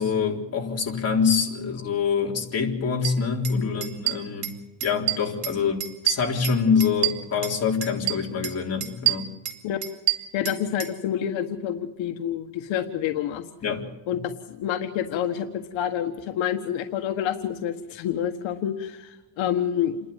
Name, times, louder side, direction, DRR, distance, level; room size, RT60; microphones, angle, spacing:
voice 1, 0.0-9.3 13.6-13.9, left 6 dB, 30° left, 0 dB, 3.9 m, -25 dB
sound 1, 3.0-3.1 3.4-3.6 3.8-4.6 4.8-5.5 5.8-7.6 7.8-8.5 8.8-10.9, right 16 dB, 80° right, 3.4 m, -27 dB
voice 2, 10.3-13.4 14.1-14.2 14.5-20.0, left 10 dB, 75° left, 5 dB, 1.6 m, -28 dB
28.5 x 11.5 x 9.4 m, 1.1 s
cardioid pair, 145°, 47 cm